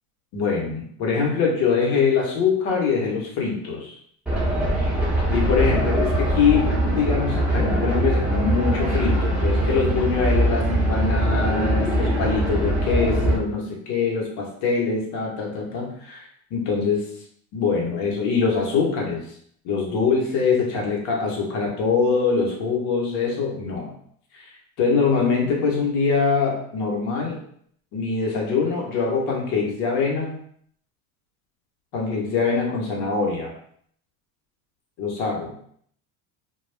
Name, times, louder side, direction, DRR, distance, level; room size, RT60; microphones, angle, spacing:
voice 1, 0.3-3.9 5.3-17.0 17.5-19.2 19.6-23.9 24.8-27.4 27.9-30.3 31.9-33.5 35.0-35.5, left 5 dB, 65° left, -1 dB, 1.1 m, -23 dB
sound 1, 4.3-13.4, right 1 dB, 5° right, 0.9 m, -22 dB
2.3 x 2.3 x 3.3 m, 0.64 s
supercardioid pair, 105°, 42 cm